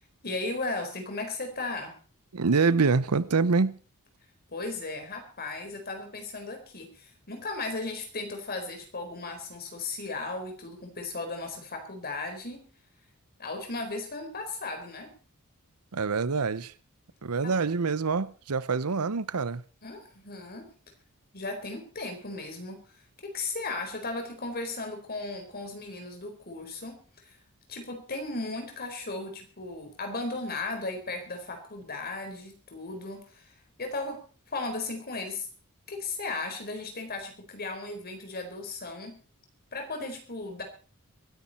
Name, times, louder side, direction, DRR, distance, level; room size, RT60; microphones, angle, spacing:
voice 1, 0.2-2.0 4.5-12.7 13.4-15.1 17.4-17.6 19.8-20.7 21.3-23.0 23.2-27.4 27.7-35.5 35.9-39.2 39.7-40.6, left 3 dB, 45° left, 4.3 m, -36 dB
voice 2, 2.3-3.8 15.9-16.7 17.2-19.6, right 4 dB, 85° right, 0.8 m, -25 dB
23.5 x 10.0 x 4.3 m
head